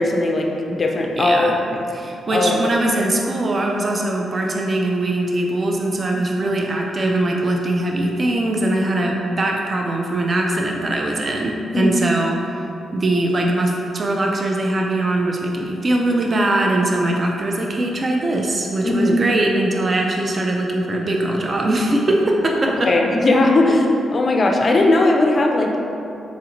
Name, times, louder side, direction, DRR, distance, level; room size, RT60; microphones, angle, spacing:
voice 1, 0.0-1.8 2.3-2.6 11.7-12.0 18.8-19.2 22.8-25.8, left 2 dB, 35° left, 1 dB, 0.4 m, -18 dB
voice 2, 1.2-1.5 1.9-12.7 12.9-22.9, right 1 dB, 35° right, 0 dB, 0.3 m, -21 dB
4.0 x 2.5 x 2.9 m, 2.6 s
cardioid pair, 100°, 0 cm